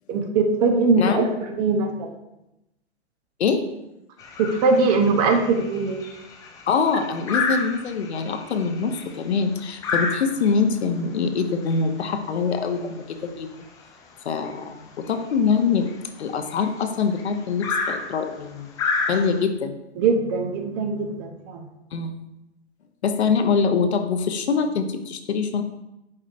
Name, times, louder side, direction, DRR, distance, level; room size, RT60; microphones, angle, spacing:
voice 1, 0.1-2.1 4.4-6.0 20.0-21.6, right 4 dB, 40° right, 5 dB, 0.9 m, -21 dB
sound 1, 4.2-19.4, left 4 dB, 10° left, 0.4 m, -32 dB
voice 2, 6.7-13.5 14.2-15.9 16.2-18.7 19.1-19.8 21.9-22.1 23.0-25.6, left 5 dB, 70° left, 6 dB, 0.9 m, -24 dB
8.7 x 4.9 x 2.5 m, 0.90 s
hypercardioid pair, 115°, 34 cm